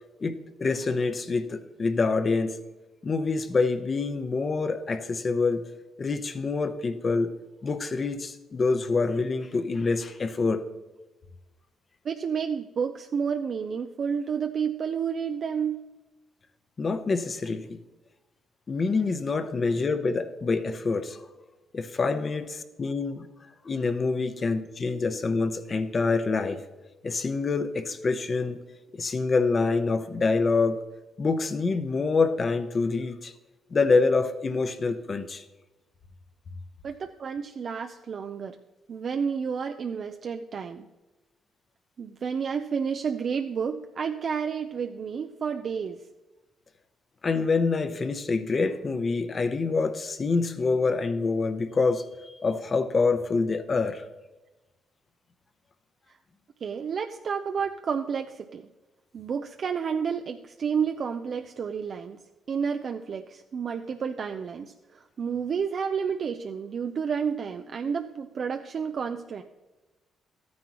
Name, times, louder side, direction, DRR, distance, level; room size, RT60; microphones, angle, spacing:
voice 1, 0.2-2.6 3.0-5.7 6.0-7.3 7.6-10.6 16.8-17.8 18.7-21.2 21.7-23.3 23.6-26.6 27.0-28.6 28.9-30.8 31.2-33.3 33.7-35.4 47.2-54.0, left 4 dB, 40° left, 10 dB, 0.8 m, -26 dB
voice 2, 12.0-15.8 36.8-38.5 38.9-40.9 42.0-46.0 56.6-58.7 59.1-62.2 62.5-69.4, right 6 dB, 50° right, 6 dB, 0.5 m, -30 dB
13.5 x 9.5 x 3.0 m, 1.1 s
cardioid pair, 90°, 0 cm